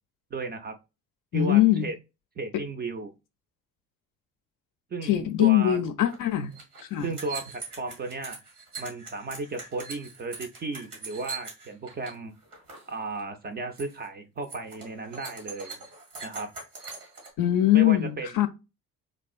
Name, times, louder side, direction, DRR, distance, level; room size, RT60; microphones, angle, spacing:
voice 1, 0.3-0.8 1.3-1.9 2.4-3.1 4.9-5.8 7.0-8.4 8.8-12.3 12.9-15.9 16.2-16.5 17.7-18.5, right 3 dB, 25° right, 0.4 m, -34 dB
voice 2, 1.3-1.9 5.0-6.6 6.8-7.1 17.4-18.5, left 13 dB, 50° left, 0.5 m, -22 dB
sound 1, 6.1-6.2 6.4-12.2 12.4-12.9 13.2-13.5 13.8-14.1 14.4-17.3, right 4 dB, 85° right, 1.0 m, -42 dB
3.2 x 2.3 x 2.3 m
figure-of-eight pair, 45°, 44 cm